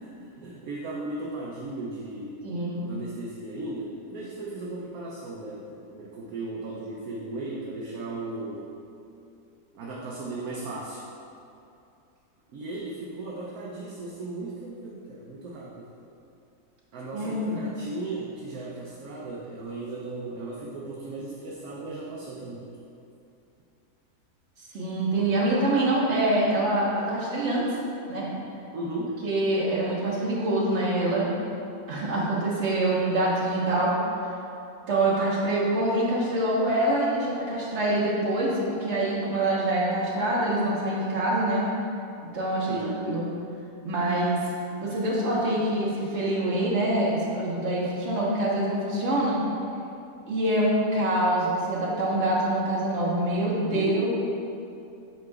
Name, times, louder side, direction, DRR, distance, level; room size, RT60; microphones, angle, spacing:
voice 1, 0.0-2.4 2.9-8.7 9.7-11.0 12.5-15.9 16.9-22.7 28.7-29.2 42.7-43.2 53.7-54.1, right 2 dB, 70° right, -4 dB, 1.1 m, -36 dB
voice 2, 2.4-2.9 17.1-17.6 24.7-27.7 28.1-28.3 29.2-31.3 31.9-33.9 34.9-41.6 42.3-43.3 43.8-44.4 44.8-49.4 50.2-54.1, right 1 dB, 50° right, -5 dB, 1.4 m, -25 dB
7.9 x 5.7 x 2.4 m, 2.7 s
omnidirectional pair, 1.7 m